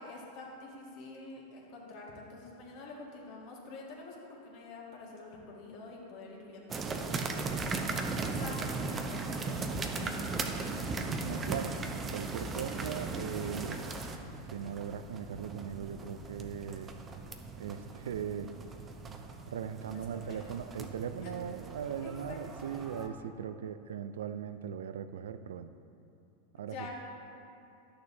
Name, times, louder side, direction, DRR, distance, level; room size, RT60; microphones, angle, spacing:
voice 1, 0.0-7.3 8.3-10.7 19.9-20.5 21.2-21.4 21.8-22.4 26.6-26.9, left 3 dB, 55° left, -2 dB, 1.7 m, -47 dB
sound 1, 6.7-23.1, right 3 dB, 25° right, 0.7 m, -38 dB
voice 2, 11.2-11.8 12.1-13.9 14.5-16.9 17.6-18.6 19.5-25.7 26.5-26.9, right 8 dB, 80° right, 11 dB, 0.4 m, -39 dB
11.0 x 6.6 x 2.7 m, 2.7 s
hypercardioid pair, 100°, 0 cm